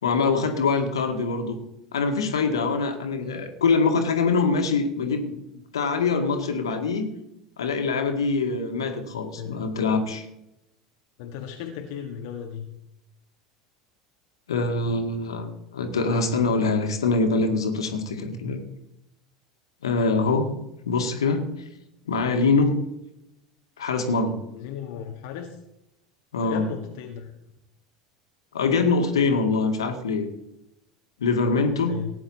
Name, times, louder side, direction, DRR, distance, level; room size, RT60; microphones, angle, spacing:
voice 1, 0.0-1.6 1.9-5.3 5.7-7.1 7.6-10.2 14.5-18.6 19.8-20.5 20.9-21.5 22.1-22.8 23.8-24.4 26.3-26.7 28.5-30.3 31.2-32.0, left 4 dB, 70° left, 5 dB, 2.0 m, -24 dB
voice 2, 8.9-9.6 11.2-12.7 24.5-25.6 26.4-27.3 31.6-32.1, left 8 dB, 55° left, 3 dB, 1.7 m, -36 dB
17.5 x 10.0 x 4.2 m, 0.84 s
figure-of-eight pair, 75°, 3 cm